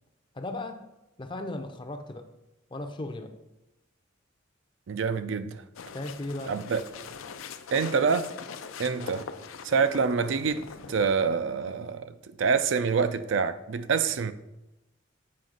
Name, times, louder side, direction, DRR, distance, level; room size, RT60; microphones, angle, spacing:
voice 1, 0.3-0.9 1.2-2.3 2.7-3.3 5.9-6.5, left 2 dB, 25° left, 0.5 m, -36 dB
voice 2, 4.9-5.6 6.5-6.8 7.7-8.3 8.8-9.3 9.6-10.6 10.9-14.3, right 5 dB, 65° right, 0.4 m, -26 dB
sound 1, 5.8-11.1, left 5 dB, 80° left, 0.5 m, -42 dB
7.6 x 5.1 x 3.8 m
head